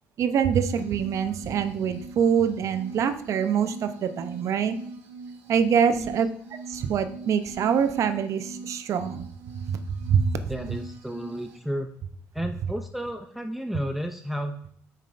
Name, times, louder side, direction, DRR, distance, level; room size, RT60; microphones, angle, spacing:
voice 1, 0.2-4.8 5.5-9.2 9.7-10.2, right 7 dB, 60° right, 10 dB, 0.6 m, -25 dB
sound 1, 0.5-11.6, right 3 dB, 85° right, 1.3 m, -42 dB
voice 2, 10.5-11.9 12.3-14.7, equal, 5° right, 5 dB, 0.5 m, -32 dB
7.2 x 5.5 x 2.6 m, 0.63 s
supercardioid pair, 70°, 6 cm